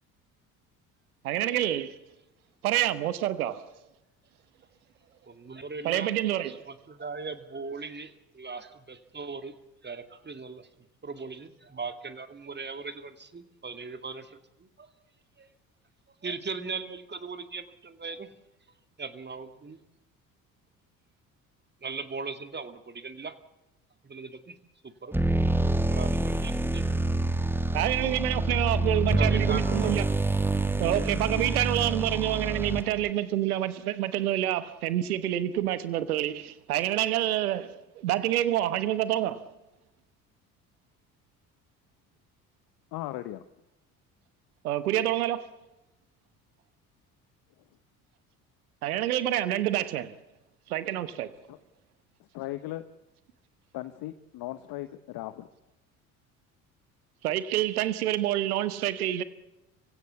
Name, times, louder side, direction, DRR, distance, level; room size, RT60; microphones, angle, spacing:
voice 1, 1.2-2.0 2.6-3.6 5.8-6.6 27.7-30.0 30.8-39.4 44.6-45.6 48.8-50.1 50.7-51.3 57.2-59.2, right 12 dB, 80° right, 1.2 m, -27 dB
voice 2, 5.3-9.5 9.8-10.7 11.0-14.9 15.4-15.5 16.2-18.3 19.0-19.8 21.8-23.4 24.0-24.6 24.8-25.1 25.7-26.9 29.1-30.2, right 4 dB, 25° right, 2.5 m, -39 dB
sound 1, 25.1-33.1, right 2 dB, 5° right, 1.5 m, -27 dB
voice 3, 42.9-43.4 51.5-51.6 52.3-52.8 53.7-55.5, left 15 dB, 55° left, 1.1 m, -37 dB
25.5 x 16.5 x 8.3 m
figure-of-eight pair, 55°, 44 cm